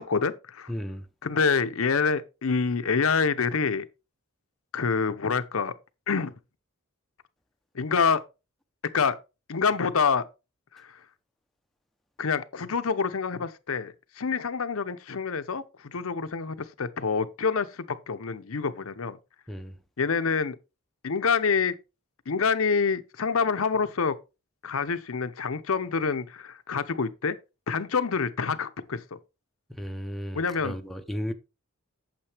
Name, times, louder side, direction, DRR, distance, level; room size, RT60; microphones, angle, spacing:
voice 1, 0.0-0.7 1.2-3.9 4.7-5.7 6.1-6.3 7.7-8.2 8.9-9.2 9.5-10.3 10.7-11.0 12.2-19.2 20.0-20.6 21.0-21.8 22.3-24.2 24.6-27.4 27.7-29.2 30.3-30.8, left 5 dB, 75° left, 0.7 m, -27 dB
voice 2, 0.7-1.0 19.5-19.7 29.7-31.3, equal, ahead, 0.7 m, -34 dB
8.8 x 7.4 x 3.4 m
head